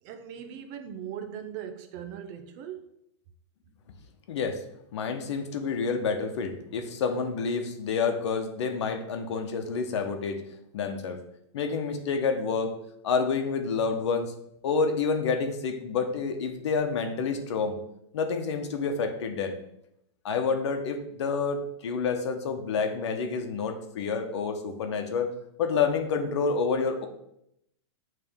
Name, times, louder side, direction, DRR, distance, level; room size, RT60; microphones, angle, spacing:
voice 1, 0.0-3.0, right 9 dB, 35° right, 0.7 m, -39 dB
voice 2, 4.3-4.6 4.9-10.4 10.7-11.2 11.5-12.8 13.0-14.3 14.6-17.8 18.1-19.6 20.2-25.3 25.6-27.1, left 5 dB, 70° left, 1.0 m, -28 dB
8.7 x 3.3 x 3.6 m
supercardioid pair, 160°, 15 cm